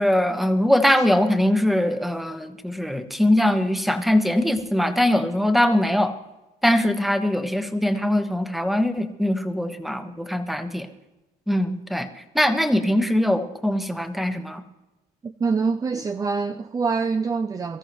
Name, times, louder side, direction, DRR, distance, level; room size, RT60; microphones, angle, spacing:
voice 1, 0.0-6.1 6.6-10.9 11.5-12.1 12.3-14.6, left 1 dB, ahead, 1.2 m, -22 dB
voice 2, 15.2-17.8, right 4 dB, 20° right, 0.5 m, -25 dB
23.5 x 13.5 x 3.1 m
cardioid pair, 110°, 17 cm